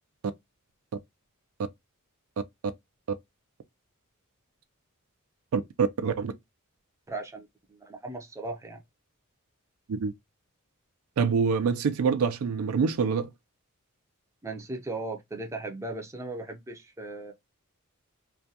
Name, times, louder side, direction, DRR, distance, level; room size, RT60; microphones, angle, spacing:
voice 1, 5.5-6.3 9.9-10.1 11.2-13.3, right 5 dB, 75° right, 0.4 m, -25 dB
voice 2, 7.1-8.8 14.4-17.3, right 2 dB, 15° right, 0.4 m, -37 dB
2.3 x 2.2 x 2.6 m
head